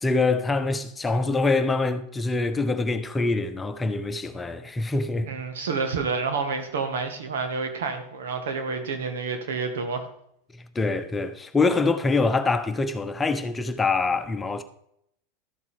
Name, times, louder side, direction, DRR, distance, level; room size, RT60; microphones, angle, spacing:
voice 1, 0.0-5.3 10.5-14.6, left 3 dB, 15° left, 1.1 m, -25 dB
voice 2, 5.2-10.0, right 4 dB, 75° right, 1.9 m, -29 dB
13.0 x 7.2 x 5.1 m
hypercardioid pair, 90°, 0 cm